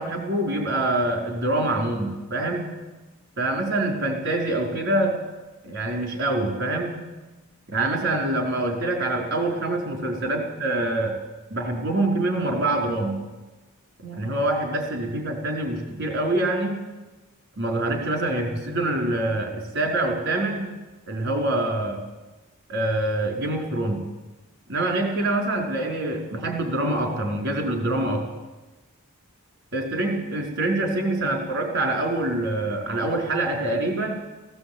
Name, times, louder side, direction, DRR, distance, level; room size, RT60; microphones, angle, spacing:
voice 1, 0.0-2.7 3.4-5.1 5.6-7.0 7.7-11.2 11.5-13.2 14.0-16.8 17.6-20.7 21.1-22.0 22.7-24.0 24.7-28.2 29.7-34.1, right 2 dB, 55° right, 1 dB, 4.8 m, -25 dB
17.5 x 16.5 x 8.9 m, 1.1 s
head